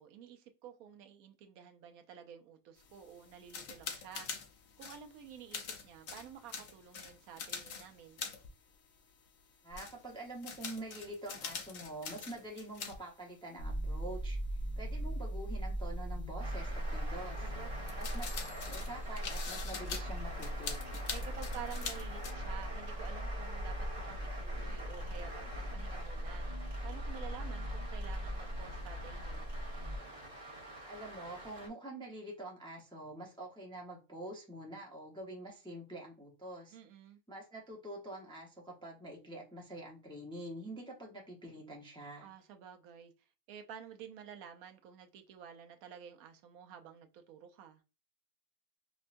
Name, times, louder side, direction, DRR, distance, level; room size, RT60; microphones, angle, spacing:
voice 1, 0.0-4.3 4.8-8.2 17.4-18.1 21.1-29.5 36.7-37.2 42.2-43.1 43.5-47.8, right 9 dB, 80° right, 1.0 m, -51 dB
sound 1, 2.8-9.4 9.7-13.0 13.3-13.4 15.2-15.3 17.8-22.3, left 6 dB, 60° left, 0.8 m, -45 dB
voice 2, 9.6-14.4 14.8-17.4 18.0-18.2 18.5-20.8 30.9-36.8 37.3-42.3, right 1 dB, 5° left, 0.5 m, -46 dB
sound 2, 13.6-30.0, equal, 75° left, 1.5 m, -39 dB
sound 3, 16.4-31.7, right 1 dB, 50° right, 1.6 m, -48 dB
5.3 x 2.2 x 2.5 m
omnidirectional pair, 1.5 m